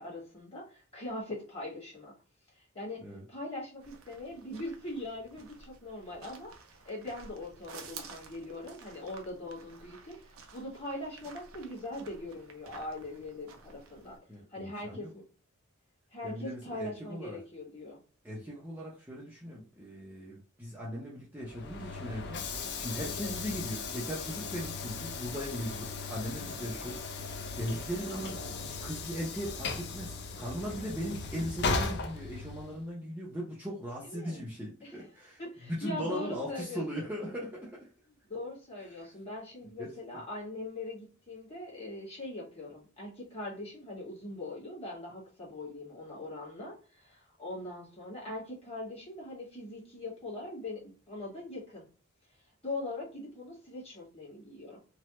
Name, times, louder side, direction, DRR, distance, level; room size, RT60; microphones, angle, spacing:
voice 1, 0.0-2.1 2.5-6.5 6.8-14.2 14.5-15.2 16.1-18.0 23.0-23.3 34.0-34.5 34.8-35.0 35.4-37.0 38.3-51.8 52.6-54.8, left 2 dB, 30° left, -5 dB, 1.6 m, -41 dB
sound 1, 3.8-14.2, right 5 dB, 75° right, 0.6 m, -52 dB
voice 2, 14.3-15.1 16.2-17.4 18.2-22.4 22.8-27.0 27.5-28.5 28.8-37.9 39.0-39.1 39.8-40.0, equal, 10° right, -6 dB, 0.6 m, -38 dB
Train / Sliding door, 21.4-32.8, left 4 dB, 50° left, 0.5 m, -37 dB
3.1 x 2.2 x 2.9 m, 0.39 s
head